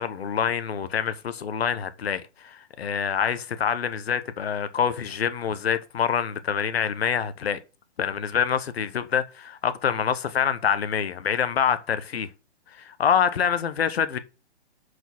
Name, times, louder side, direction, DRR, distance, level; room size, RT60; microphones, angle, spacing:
voice 1, 0.0-7.6 8.0-12.3 12.7-14.2, left 7 dB, 60° left, 1.1 m, -26 dB
6.3 x 5.0 x 6.0 m
hypercardioid pair, 175°, 35 cm